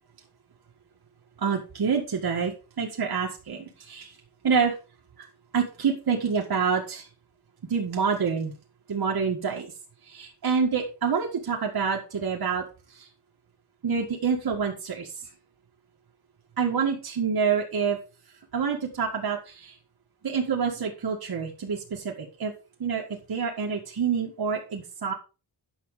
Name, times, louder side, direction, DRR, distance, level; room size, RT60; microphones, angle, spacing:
voice 1, 1.4-4.1 4.4-4.8 5.2-5.3 5.5-7.1 7.7-8.5 8.9-9.7 10.1-12.6 12.9-13.1 13.8-15.1 16.6-18.0 18.5-19.8 20.2-22.5 22.8-23.0 23.3-25.1, right 6 dB, 65° right, -1 dB, 1.8 m, -27 dB
9.9 x 6.2 x 4.9 m, 0.32 s
wide cardioid pair, 110°, 40 cm